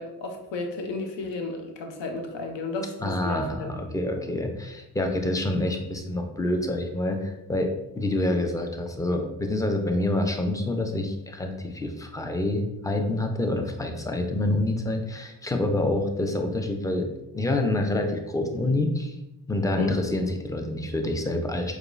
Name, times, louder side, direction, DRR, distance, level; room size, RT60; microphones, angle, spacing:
voice 1, 0.0-3.7 4.2-4.3 19.7-20.0, left 2 dB, 65° left, 3 dB, 0.8 m, -33 dB
voice 2, 3.0-19.2 19.5-21.8, left 1 dB, 5° left, 4 dB, 0.5 m, -27 dB
4.7 x 2.3 x 2.5 m, 0.94 s
hypercardioid pair, 45°, 48 cm